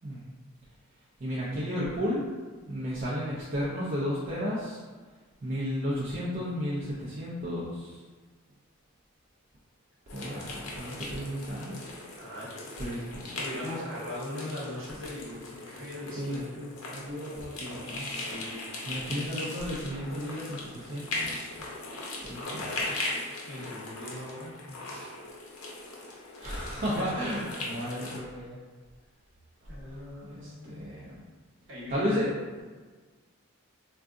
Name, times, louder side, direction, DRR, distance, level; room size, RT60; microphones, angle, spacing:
voice 1, 1.2-2.3 2.7-4.8 5.4-8.0 10.1-11.8 12.8-13.3 16.2-18.1 18.9-21.4 22.2-23.0 26.4-28.6 30.2-31.2 31.9-32.3, equal, 40° right, -8 dB, 0.4 m, -33 dB
sound 1, 10.1-28.2, left 2 dB, 90° left, 0.6 m, -39 dB
voice 2, 12.1-12.5 13.4-16.6 18.1-18.7 19.0-19.2 23.4-25.1 26.9-27.4 27.8-28.1 29.6-31.1 31.7-32.3, left 1 dB, 60° right, -6 dB, 1.0 m, -40 dB
3.6 x 2.3 x 2.5 m, 1.4 s
head